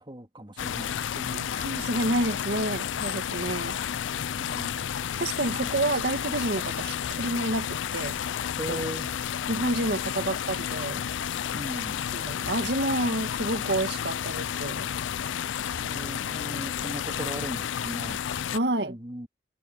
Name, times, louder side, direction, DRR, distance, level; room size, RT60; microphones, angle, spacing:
voice 1, 0.0-1.5 4.4-5.0 8.6-9.1 11.5-12.0 15.8-18.2 18.9-19.3, right 1 dB, 25° right, 2.5 m, -38 dB
sound 1, 0.6-18.6, left 9 dB, 80° left, 0.4 m, -31 dB
voice 2, 1.3-3.8 5.2-8.2 8.7-8.8 9.5-11.0 12.1-14.9 18.5-19.0, right 1 dB, 60° right, 2.0 m, -29 dB
head